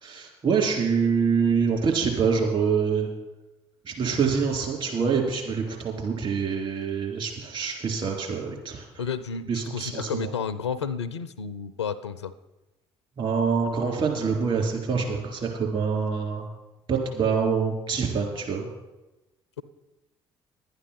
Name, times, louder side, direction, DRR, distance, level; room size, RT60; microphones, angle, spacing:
voice 1, 0.0-3.1 3.8-8.9 9.5-10.3 13.2-16.5 16.9-18.7, right 5 dB, 40° right, 1 dB, 3.5 m, -25 dB
voice 2, 9.0-12.3, left 6 dB, 80° left, 15 dB, 0.5 m, -31 dB
11.0 x 9.7 x 5.8 m, 1.0 s
figure-of-eight pair, 50°, 14 cm